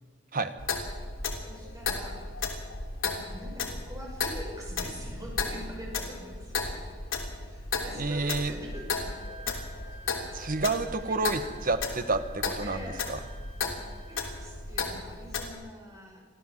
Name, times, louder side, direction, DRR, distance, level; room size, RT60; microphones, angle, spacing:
Clock, 0.6-15.5, left 4 dB, 85° left, 3.1 m, -35 dB
voice 1, 1.3-2.3 3.3-6.8 7.4-9.2 10.9-11.2 12.6-13.1 14.0-16.3, equal, 20° right, -1 dB, 6.5 m, -44 dB
voice 2, 8.0-8.5 10.3-12.8 13.1-13.2, right 3 dB, 45° right, 10 dB, 1.3 m, -29 dB
Wind instrument woodwind instrument, 8.7-14.5, right 4 dB, 35° left, 2.9 m, -51 dB
24.0 x 15.0 x 7.5 m, 1.5 s
head